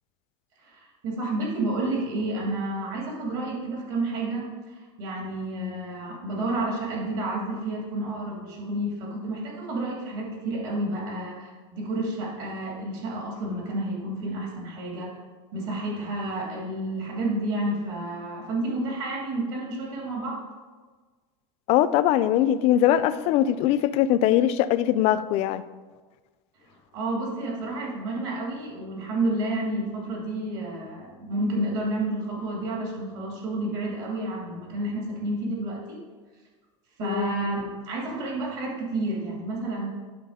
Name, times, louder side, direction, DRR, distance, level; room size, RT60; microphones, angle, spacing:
voice 1, 0.6-15.2 15.5-20.4 26.9-36.0 37.0-39.9, right 2 dB, 60° right, -2 dB, 2.4 m, -30 dB
voice 2, 21.7-25.6 37.0-37.3, left 12 dB, 45° left, 14 dB, 0.4 m, -21 dB
11.0 x 4.0 x 4.9 m, 1.4 s
supercardioid pair, 150°, 15 cm